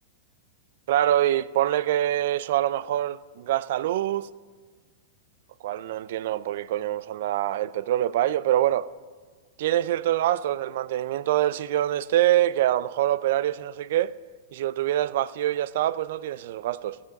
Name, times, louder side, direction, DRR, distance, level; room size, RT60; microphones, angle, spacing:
voice 1, 0.9-4.3 5.6-8.9 9.6-14.2 14.5-17.0, right 13 dB, 65° right, 0.3 m, -25 dB
13.5 x 8.2 x 4.1 m
hypercardioid pair, 125°, 0 cm